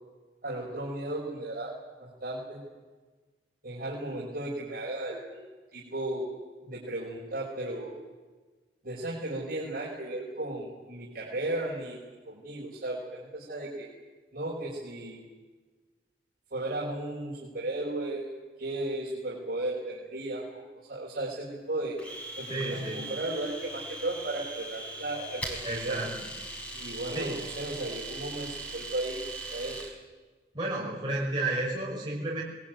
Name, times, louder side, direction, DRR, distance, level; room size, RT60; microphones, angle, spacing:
voice 1, 0.4-1.7 2.0-2.6 3.6-5.4 5.7-6.3 6.6-7.9 8.8-12.0 12.3-13.9 14.3-15.2 16.5-18.2 18.6-20.6 20.9-22.0 22.4-26.0 26.7-29.2 29.5-29.8, right 1 dB, 55° right, -6 dB, 5.8 m, -35 dB
Domestic sounds home sounds, 22.0-29.9, right 2 dB, 10° left, 5.3 m, -40 dB
voice 2, 22.5-23.0 25.6-26.1 27.1-27.3 30.5-32.4, right 2 dB, 25° right, -5 dB, 5.7 m, -31 dB
23.0 x 21.5 x 9.5 m, 1.3 s
head